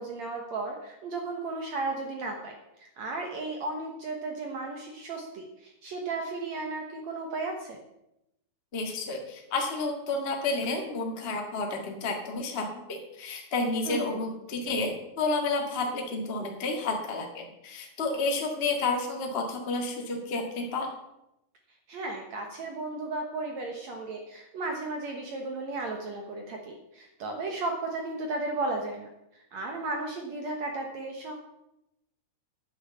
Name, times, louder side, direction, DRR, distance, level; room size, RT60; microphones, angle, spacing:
voice 1, 0.0-7.8 13.9-14.2 21.9-29.1 29.4-31.3, right 2 dB, 65° right, 2 dB, 1.9 m, -34 dB
voice 2, 8.7-12.7 13.1-20.9, left 3 dB, 75° left, 1 dB, 0.5 m, -30 dB
10.5 x 9.0 x 6.9 m, 0.87 s
omnidirectional pair, 4.6 m